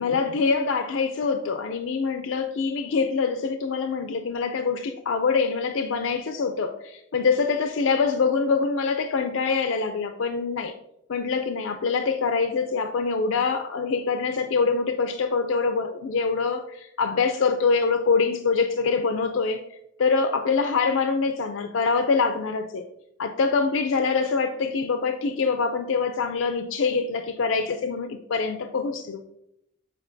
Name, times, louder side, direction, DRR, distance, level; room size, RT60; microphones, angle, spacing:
voice 1, 0.0-10.7 11.1-19.6 20.0-22.8 23.2-29.2, left 4 dB, 80° left, 7 dB, 0.4 m, -24 dB
8.2 x 4.4 x 2.6 m, 0.80 s
head